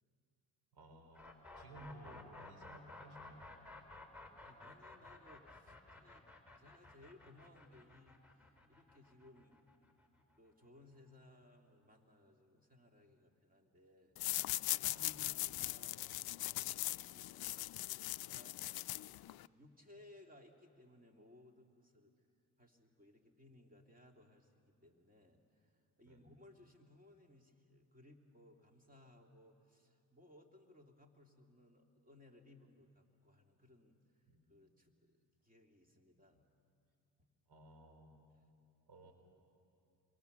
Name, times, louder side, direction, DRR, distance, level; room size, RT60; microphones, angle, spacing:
voice 1, 0.7-3.5 14.8-15.3 26.1-26.2 34.3-34.5 37.5-38.1 38.9-39.1, right 1 dB, 70° right, 4 dB, 4.3 m, -57 dB
sound 1, 1.1-11.0, left 2 dB, 5° right, 3.8 m, -55 dB
voice 2, 4.4-6.3 6.6-8.2 8.7-9.6 10.4-14.6 15.3-22.1 22.6-36.5 37.2-37.3 38.3-38.5, left 1 dB, 20° right, 2 dB, 2.9 m, -64 dB
sound 2, 14.2-19.5, left 16 dB, 65° left, 0.5 m, -40 dB
28.0 x 23.0 x 6.9 m, 2.5 s
cardioid pair, 70°, 40 cm